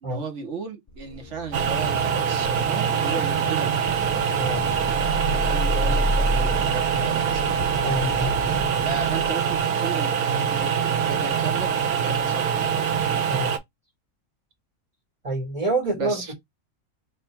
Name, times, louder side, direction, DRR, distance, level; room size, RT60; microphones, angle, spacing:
voice 1, 0.0-3.7 5.3-7.4 8.7-13.1 15.9-16.3, right 5 dB, 55° right, 1.3 m, -35 dB
sound 1, 0.9-11.2 11.5-11.8, left 1 dB, 20° left, 0.5 m, -31 dB
sound 2, 1.5-13.6, right 7 dB, 75° right, 1.2 m, -24 dB
sound 3, 2.4-9.3, left 1 dB, ahead, 0.9 m, -41 dB
voice 2, 7.8-8.3 13.3-13.5 15.2-16.3, right 2 dB, 25° right, 1.3 m, -27 dB
3.4 x 2.5 x 4.3 m
omnidirectional pair, 1.6 m